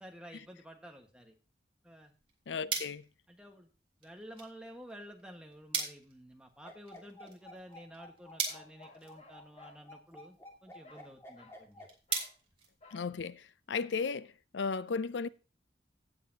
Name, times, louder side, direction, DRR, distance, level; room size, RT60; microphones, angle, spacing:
voice 1, 0.0-1.3 1.8-2.1 2.7-2.8 3.3-3.7 4.0-11.8, equal, 5° right, 1.5 m, -51 dB
sound 1, 1.9-13.4, right 5 dB, 30° right, 2.4 m, -43 dB
voice 2, 2.5-3.0 12.9-15.3, left 5 dB, 80° left, 0.5 m, -35 dB
sound 2, 6.6-11.9, left 1 dB, 15° left, 2.1 m, -52 dB
Bark, 8.4-9.8 10.8-11.1 11.3-11.6 12.1-12.4 12.8-13.1, left 2 dB, 35° left, 1.9 m, -58 dB
16.5 x 6.9 x 2.8 m
head